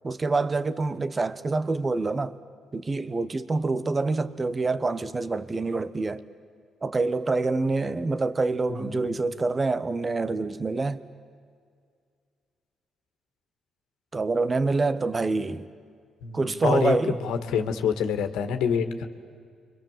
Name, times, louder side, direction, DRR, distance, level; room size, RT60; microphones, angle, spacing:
voice 1, 0.0-2.3 2.7-6.2 6.8-11.0 14.1-15.7 16.3-17.2, right 3 dB, 30° right, 1.1 m, -26 dB
voice 2, 8.7-9.2 16.2-19.1, left 7 dB, 90° left, 1.9 m, -27 dB
29.0 x 24.5 x 7.6 m
cardioid pair, 90°, 0 cm